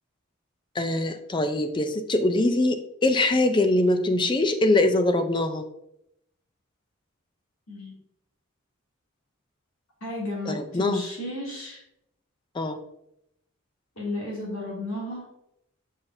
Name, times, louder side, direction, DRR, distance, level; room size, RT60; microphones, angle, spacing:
voice 1, 0.7-5.7 10.5-11.0 12.5-12.8, left 2 dB, 20° left, 8 dB, 0.4 m, -23 dB
voice 2, 10.0-11.8 14.0-15.3, left 1 dB, 75° left, -4 dB, 2.5 m, -33 dB
7.0 x 5.5 x 2.6 m, 0.80 s
head